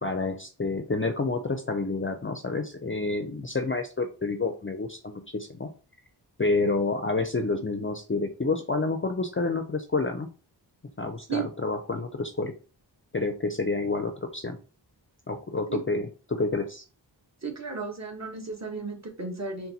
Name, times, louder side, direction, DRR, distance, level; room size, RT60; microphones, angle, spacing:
voice 1, 0.0-5.7 6.4-10.3 11.0-12.5 13.1-14.6 15.3-16.8, left 3 dB, 30° left, 6 dB, 0.5 m, -29 dB
voice 2, 17.4-19.7, right 5 dB, 35° right, 0 dB, 1.2 m, -34 dB
4.1 x 2.2 x 4.0 m, 0.35 s
wide cardioid pair, 50°, 44 cm